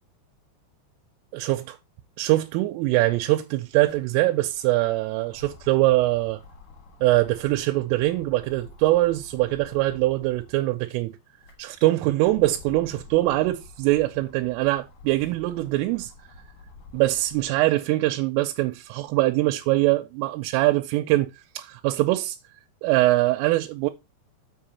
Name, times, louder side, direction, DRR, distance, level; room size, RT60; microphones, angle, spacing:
voice 1, 1.3-1.8 2.2-6.4 7.0-11.2 11.6-16.1 16.9-22.4 22.8-23.9, right 18 dB, 90° right, 3.2 m, -23 dB
sound 1, 2.6-2.7 2.9-10.7 11.2-17.7 18.2-19.3, left 2 dB, 80° left, 1.6 m, -49 dB
7.4 x 5.6 x 4.1 m
omnidirectional pair, 5.7 m